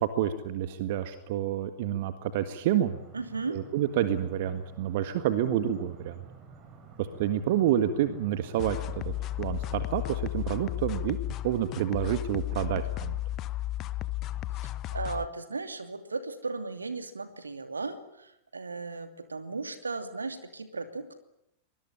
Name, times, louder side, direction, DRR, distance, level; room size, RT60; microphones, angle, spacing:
voice 1, 0.0-3.0 3.5-6.2 7.0-8.8 9.0-9.1 9.4-11.2 11.4-13.2, right 11 dB, 50° right, 10 dB, 1.7 m, -28 dB
sound 1, 2.8-10.7, right 5 dB, 35° right, 6.4 m, -51 dB
voice 2, 3.1-3.6 14.9-21.2, right 3 dB, 75° right, 9 dB, 2.8 m, -36 dB
sound 2, 8.6-15.3, left 15 dB, 35° left, 1.0 m, -34 dB
24.0 x 21.0 x 9.9 m, 0.80 s
figure-of-eight pair, 90°, 0 cm